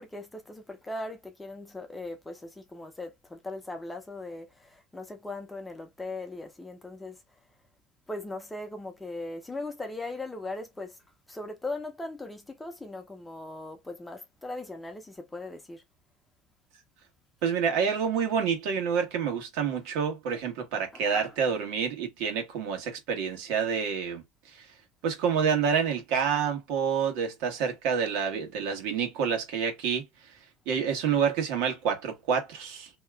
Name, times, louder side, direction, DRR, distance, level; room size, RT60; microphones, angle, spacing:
voice 1, 0.0-7.2 8.1-11.0 11.3-15.8 20.9-21.3, left 2 dB, 10° left, 0.7 m, -39 dB
voice 2, 17.4-24.2 24.6-24.7 25.0-30.1 30.7-32.9, right 7 dB, 75° right, 1.3 m, -28 dB
2.9 x 2.3 x 3.4 m
cardioid pair, 135°, 0 cm